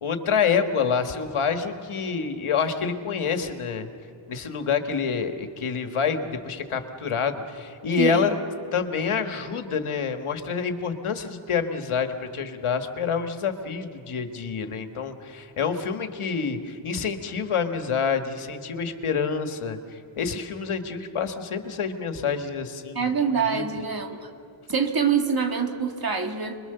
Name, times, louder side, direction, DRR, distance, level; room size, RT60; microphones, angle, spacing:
voice 1, 0.0-3.9 4.3-8.3 8.7-23.1 23.5-23.6, left 6 dB, 85° left, 7 dB, 1.6 m, -27 dB
voice 2, 23.0-24.3 24.7-26.6, right 6 dB, 45° right, 4 dB, 2.0 m, -25 dB
26.0 x 22.0 x 6.8 m, 2.7 s
wide cardioid pair, 135°, 49 cm